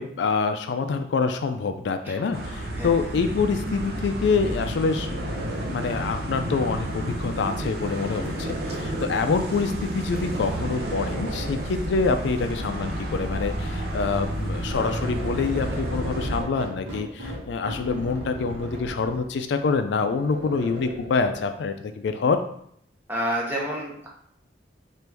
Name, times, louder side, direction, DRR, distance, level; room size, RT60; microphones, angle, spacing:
voice 1, 0.0-22.4, left 4 dB, 75° left, 7 dB, 0.3 m, -26 dB
voice 2, 2.0-3.0 23.1-24.1, equal, 10° right, -4 dB, 0.8 m, -30 dB
sound 1, 2.3-16.4, right 1 dB, 60° right, 0.6 m, -31 dB
sound 2, 4.9-7.6 8.3-10.5 10.8-12.6 13.6-21.4, right 1 dB, 75° right, 1.0 m, -38 dB
3.4 x 2.5 x 4.5 m, 0.68 s
head